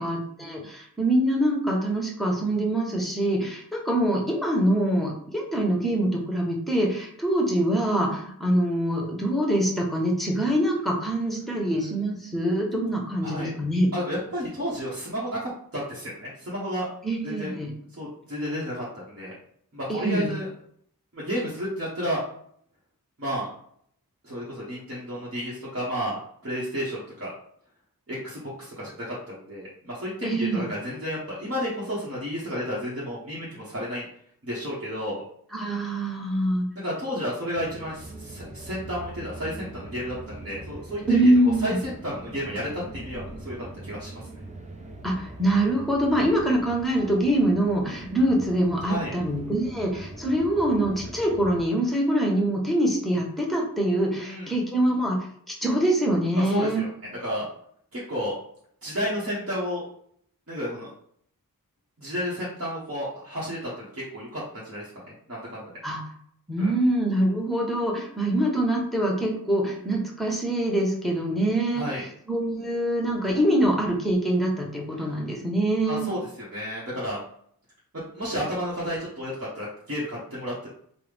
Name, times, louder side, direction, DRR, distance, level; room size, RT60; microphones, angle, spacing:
voice 1, 0.0-13.9 17.0-17.7 19.9-20.3 30.2-30.7 35.5-36.7 41.1-41.8 45.0-55.2 55.5-56.8 65.8-66.0 66.5-71.9 72.3-76.1, right 1 dB, ahead, -1 dB, 0.9 m, -24 dB
voice 2, 13.2-13.6 13.9-16.9 17.2-17.5 17.9-19.3 19.7-20.5 21.1-22.2 23.2-23.5 24.2-27.3 28.1-34.1 34.4-35.2 36.3-36.4 36.8-41.3 41.6-44.3 48.8-49.1 54.2-54.5 56.4-56.9 57.2-57.5 57.9-58.4 58.8-59.8 60.5-60.9 62.0-65.7 66.6-66.7 71.7-72.0 75.9-77.2 77.9-80.7, equal, 40° right, -8 dB, 1.0 m, -32 dB
sound 1, 37.5-51.6, right 2 dB, 20° right, 0.5 m, -42 dB
3.4 x 2.1 x 3.4 m, 0.65 s
wide cardioid pair, 55°, 36 cm